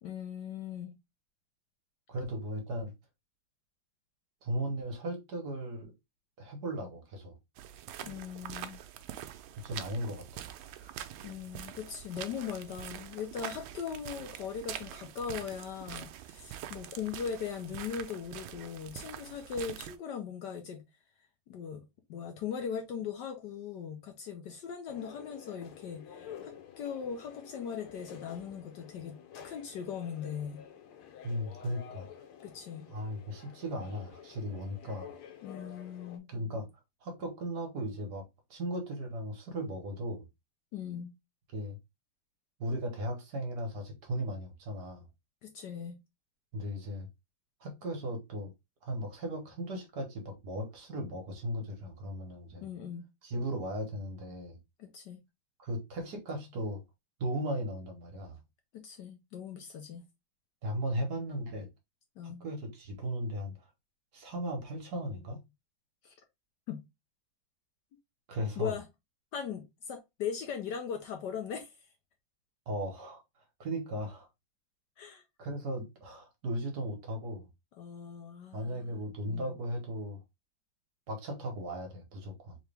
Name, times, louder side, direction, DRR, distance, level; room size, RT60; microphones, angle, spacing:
voice 1, 0.0-0.9 8.0-8.8 11.2-20.8 21.5-21.8 22.1-29.2 29.4-30.6 32.4-32.9 35.4-36.3 40.7-41.1 45.4-46.0 52.6-53.0 54.8-55.2 58.7-60.0 62.2-62.4 66.0-66.1 66.7-66.8 68.6-68.8 69.3-71.7 75.0-75.2 77.8-78.9 79.3-79.6, left 7 dB, 65° left, 1.1 m, -39 dB
voice 2, 2.1-2.9 4.4-5.9 6.4-7.3 9.6-10.5 10.8-11.0 31.2-32.1 32.9-35.1 36.3-36.7 37.0-38.2 38.5-40.2 41.5-41.8 42.6-45.0 46.5-47.1 47.6-48.5 48.8-52.6 53.2-54.6 55.6-56.8 57.2-58.4 60.6-61.7 62.2-63.5 64.1-65.4 68.3-68.7 72.7-73.2 73.6-74.3 75.4-77.5 78.5-80.2 81.1-82.6, equal, 55° right, 1.5 m, -36 dB
sound 1, 7.6-20.0, right 11 dB, 80° right, 1.4 m, -44 dB
sound 2, 24.9-36.2, left 8 dB, 90° left, 1.7 m, -50 dB
3.7 x 3.3 x 3.3 m
omnidirectional pair, 2.2 m